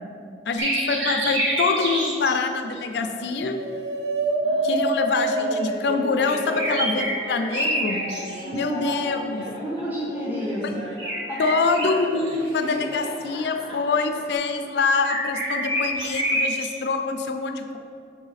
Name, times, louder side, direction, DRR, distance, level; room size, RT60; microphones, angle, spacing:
voice 1, 0.5-3.6 4.6-8.0 8.5-9.4 11.4-17.8, left 4 dB, 65° left, 6 dB, 0.4 m, -25 dB
sound 1, 0.6-2.3 6.2-8.6 11.0-12.3 15.0-16.7, right 1 dB, 80° right, 1.3 m, -27 dB
sound 2, 2.1-2.7 3.2-7.3 7.8-9.1, right 2 dB, 60° right, 0.6 m, -28 dB
voice 2, 4.4-4.8 8.4-10.6 11.3-11.4, equal, 10° right, -5 dB, 0.6 m, -31 dB
Laughter, 5.4-11.3 11.8-14.4, equal, 30° right, 1.1 m, -38 dB
6.2 x 4.8 x 4.0 m, 2.5 s
head